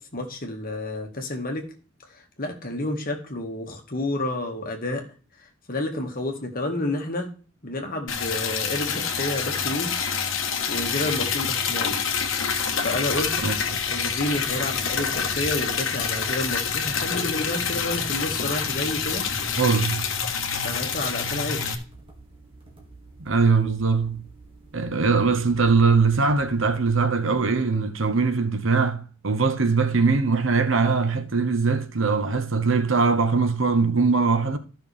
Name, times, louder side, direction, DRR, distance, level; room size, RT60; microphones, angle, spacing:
voice 1, 0.0-1.7 2.1-5.0 5.7-7.3 7.6-9.9 10.7-12.0 12.8-13.3 13.9-19.3 20.6-21.8, left 1 dB, 45° left, 1.9 m, -30 dB
Liquid, 8.1-21.7, left 6 dB, 70° left, 1.5 m, -27 dB
sound 1, 12.1-27.0, right 2 dB, 25° right, 2.2 m, -49 dB
voice 2, 19.6-20.0 23.2-24.2 24.7-34.6, right 4 dB, 65° right, 1.1 m, -21 dB
14.0 x 6.0 x 3.5 m
head